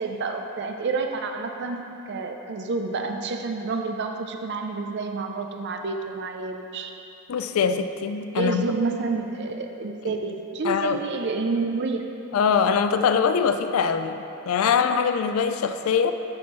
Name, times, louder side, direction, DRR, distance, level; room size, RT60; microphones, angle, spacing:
voice 1, 0.0-6.9 8.3-12.0, right 3 dB, 55° right, 4 dB, 0.5 m, -29 dB
voice 2, 7.3-8.7 10.0-10.1 10.6-11.0 12.3-16.1, left 6 dB, 85° left, 9 dB, 0.4 m, -23 dB
12.5 x 4.4 x 3.1 m, 2.8 s
head